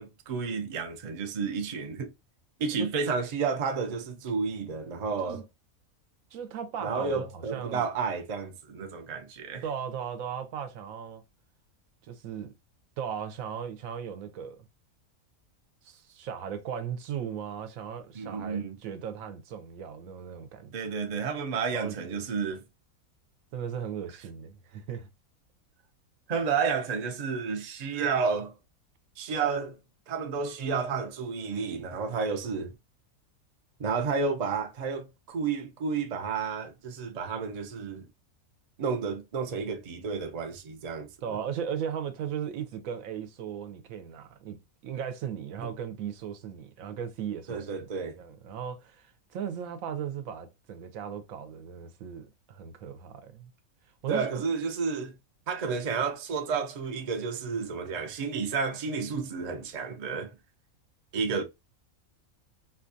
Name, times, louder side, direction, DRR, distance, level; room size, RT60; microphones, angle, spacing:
voice 1, 0.0-2.1 2.6-5.4 6.8-9.6 18.1-18.8 20.7-22.6 26.3-28.5 29.2-29.8 30.1-32.7 33.8-38.1 38.8-41.4 45.6-45.7 47.5-48.2 54.1-55.1 55.5-60.3 61.1-61.4, right 5 dB, 50° right, 0.4 m, -31 dB
voice 2, 6.3-7.9 9.6-11.2 12.0-12.5 13.0-14.6 15.8-20.7 21.7-22.2 23.5-25.1 41.2-47.9 48.2-53.5 54.0-54.4, right 8 dB, 75° right, 1.0 m, -37 dB
4.2 x 2.3 x 2.5 m
omnidirectional pair, 1.5 m